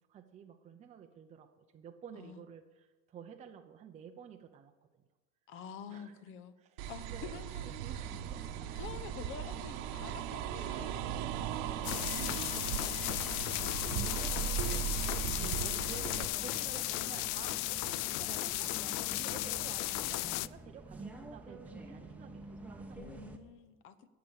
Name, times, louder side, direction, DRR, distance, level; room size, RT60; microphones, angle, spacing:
voice 1, 0.1-5.0 5.9-6.1 6.6-8.8 14.0-14.4 14.6-14.8 15.1-23.3, right 7 dB, 20° right, 4 dB, 0.7 m, -52 dB
voice 2, 5.5-6.5 6.9-8.1 8.8-13.1 13.5-14.2 22.9-24.1, left 7 dB, 40° left, 13 dB, 1.0 m, -49 dB
sound 1, 6.8-16.2, right 10 dB, 75° right, 1.2 m, -38 dB
sound 2, 8.0-23.4, right 2 dB, 5° right, 1.0 m, -48 dB
sound 3, 11.8-20.5, left 19 dB, 60° left, 0.4 m, -35 dB
20.0 x 7.0 x 8.1 m, 1.2 s
cardioid pair, 165°, 31 cm